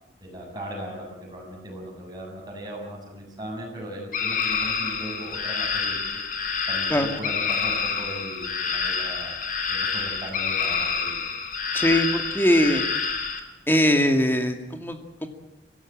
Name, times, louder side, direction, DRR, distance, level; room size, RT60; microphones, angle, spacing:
voice 1, 0.2-6.0 6.7-9.3 9.7-11.1, right 1 dB, 25° right, -1 dB, 7.8 m, -37 dB
sound 1, 4.1-13.4, left 5 dB, 50° left, 2.9 m, -27 dB
voice 2, 11.7-12.8 13.7-15.3, equal, 10° left, 5 dB, 2.3 m, -21 dB
23.0 x 16.5 x 8.9 m, 0.97 s
head